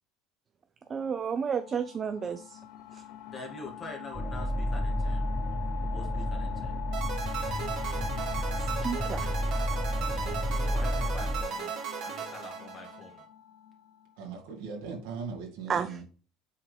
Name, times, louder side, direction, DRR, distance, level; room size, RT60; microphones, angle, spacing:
sound 1, 0.9-14.4, left 11 dB, 70° left, 0.7 m, -43 dB
voice 1, 0.9-2.6 2.9-3.0 8.6-9.3 15.7-16.0, right 6 dB, 35° right, 9 dB, 0.5 m, -32 dB
voice 2, 3.3-6.8 10.1-13.2, left 2 dB, 25° left, 2 dB, 2.1 m, -46 dB
sound 2, 4.1-11.4, equal, 5° left, 1.0 m, -31 dB
sound 3, 6.9-13.2, right 7 dB, 60° right, 1.9 m, -36 dB
voice 3, 14.2-16.0, right 5 dB, 85° right, 0 dB, 2.3 m, -39 dB
7.4 x 3.9 x 3.4 m, 0.38 s
supercardioid pair, 115°, 0 cm